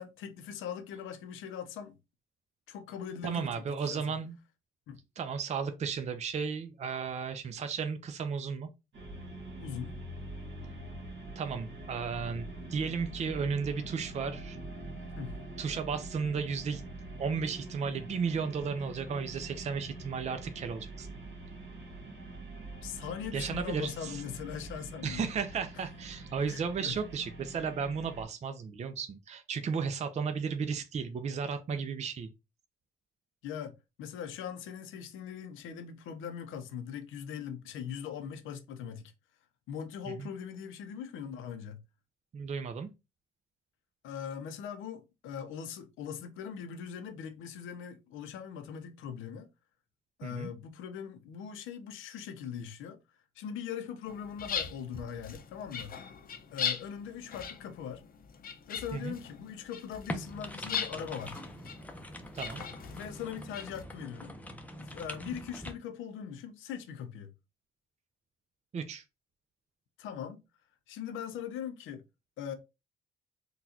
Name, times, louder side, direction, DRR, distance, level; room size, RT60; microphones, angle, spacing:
voice 1, 0.0-2.0 2.7-4.2 4.9-5.0 9.6-10.0 15.2-15.4 22.8-25.3 25.7-25.9 26.4-27.0 33.4-39.1 39.7-41.8 44.0-49.5 50.2-53.0 53.4-56.0 56.5-58.0 58.7-61.4 62.9-64.4 64.8-67.3 70.0-70.4 70.9-72.0 72.4-72.5, left 8 dB, 90° left, 0.6 m, -41 dB
voice 2, 3.2-4.4 5.2-8.7 11.4-14.6 15.6-16.8 17.2-21.1 23.3-24.2 25.0-32.3 40.1-40.3 42.3-42.9 50.2-50.5 58.9-59.1 62.3-62.6 68.7-69.0, right 5 dB, 35° right, 0.5 m, -34 dB
sound 1, 8.9-28.2, right 2 dB, 65° right, 1.6 m, -44 dB
sound 2, 54.1-63.8, left 7 dB, 45° left, 0.6 m, -40 dB
sound 3, 60.1-65.7, equal, 5° left, 0.6 m, -43 dB
3.9 x 2.3 x 2.7 m
cardioid pair, 90°, 20 cm